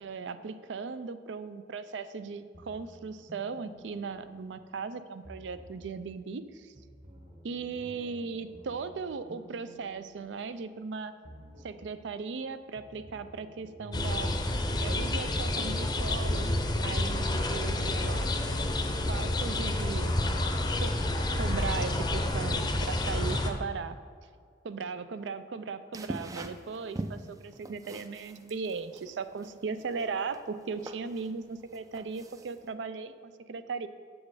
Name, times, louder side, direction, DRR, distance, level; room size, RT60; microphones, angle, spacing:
voice 1, 0.0-6.7 7.4-11.1 11.6-14.3 14.8-16.5 16.8-18.3 19.0-20.2 20.8-21.0 21.3-24.0 24.6-33.9, right 5 dB, 85° right, 12 dB, 0.4 m, -37 dB
sound 1, 2.5-4.8 5.2-6.1 6.8-10.9 11.2-12.1 12.8-14.5, equal, 40° right, 1.1 m, -52 dB
sound 2, 13.9-23.5, left 1 dB, 25° left, 0.6 m, -29 dB
sound 3, 25.9-32.7, right 2 dB, 20° right, 0.3 m, -43 dB
7.2 x 6.3 x 4.8 m, 2.1 s
head